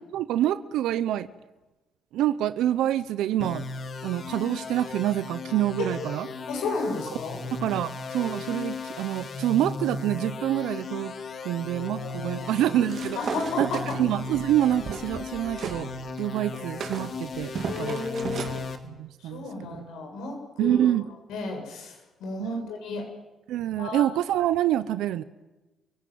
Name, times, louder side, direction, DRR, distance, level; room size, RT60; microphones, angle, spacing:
voice 1, 0.1-1.3 2.1-3.6 4.0-6.3 7.5-11.1 11.4-13.2 13.6-13.7 14.0-15.9 16.2-18.0 18.8-19.8 20.6-21.1 22.4-22.6 23.5-25.2, right 12 dB, 80° right, 14 dB, 0.8 m, -26 dB
sound 1, 3.4-18.8, left 4 dB, 55° left, 2.4 m, -36 dB
voice 2, 6.5-7.4 11.8-12.7 13.2-14.0 17.7-18.6 19.2-20.9 21.3-23.1 23.8-24.0, left 3 dB, 80° left, 2 dB, 7.5 m, -33 dB
sound 2, 12.9-15.8 16.2-18.6, right 6 dB, 60° right, 3.1 m, -35 dB
28.5 x 17.5 x 9.4 m, 1.1 s
supercardioid pair, 65°, 0 cm